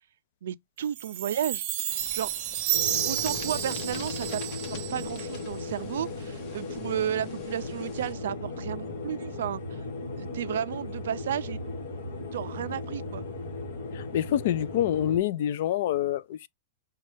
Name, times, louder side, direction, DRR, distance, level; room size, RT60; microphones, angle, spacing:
voice 1, 0.4-1.6 2.1-2.3 3.0-4.4 4.7-9.6 10.2-11.6 12.3-13.2, right 10 dB, 70° right, 0.3 m, -33 dB
Chime, 1.0-5.4, right 12 dB, 30° right, 0.7 m, -31 dB
sound 1, 1.9-8.1, left 4 dB, 30° left, 0.9 m, -47 dB
sound 2, 2.7-15.2, left 3 dB, 65° left, 1.3 m, -37 dB
voice 2, 14.1-16.5, left 11 dB, 45° left, 0.3 m, -26 dB
6.2 x 2.3 x 3.1 m
supercardioid pair, 180°, 0 cm